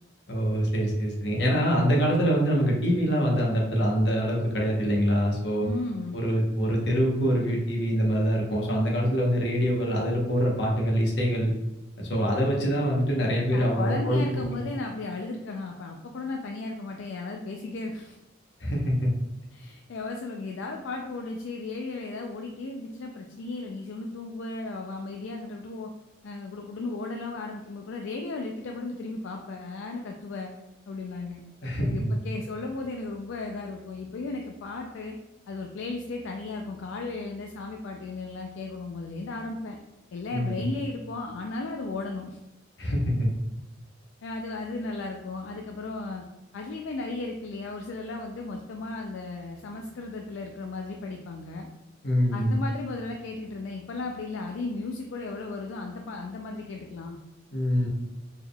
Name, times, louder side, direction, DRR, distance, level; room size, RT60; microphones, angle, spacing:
voice 1, 0.3-5.7 6.1-11.5 12.0-14.6 18.6-19.1 31.6-32.2 40.3-40.6 42.8-43.3 52.0-52.6 57.5-57.9, equal, 60° left, -2 dB, 0.9 m, -25 dB
voice 2, 5.6-6.2 13.5-18.2 19.5-25.9 26.2-30.5 30.9-31.4 31.8-35.2 35.5-39.8 40.1-42.4 44.2-46.2 46.5-51.7 52.3-57.2, left 3 dB, 75° left, 2 dB, 0.4 m, -35 dB
4.4 x 3.4 x 2.3 m, 0.96 s
head